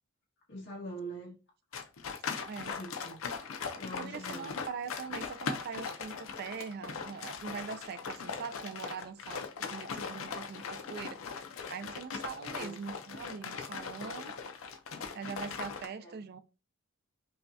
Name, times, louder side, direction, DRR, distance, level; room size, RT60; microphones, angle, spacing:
voice 1, 0.5-1.4 2.6-3.2 3.7-4.5 12.4-12.8 16.0-16.1, right 1 dB, 55° left, 1.6 m, -44 dB
sound 1, 1.7-15.9, left 5 dB, 75° left, 0.6 m, -40 dB
voice 2, 2.4-2.8 4.0-9.4 9.7-11.2 11.7-14.3 15.1-16.4, right 6 dB, 50° right, 0.3 m, -42 dB
5.3 x 2.3 x 2.6 m
head